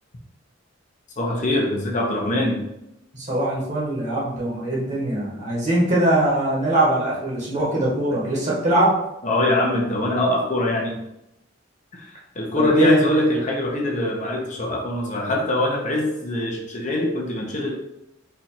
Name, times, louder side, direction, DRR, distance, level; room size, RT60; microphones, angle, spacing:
voice 1, 1.2-2.6 9.2-11.0 11.9-17.7, left 1 dB, 40° left, -2 dB, 0.9 m, -23 dB
voice 2, 3.1-8.9 12.6-13.0, right 1 dB, 40° right, -5 dB, 1.5 m, -22 dB
4.4 x 2.6 x 4.3 m, 0.85 s
head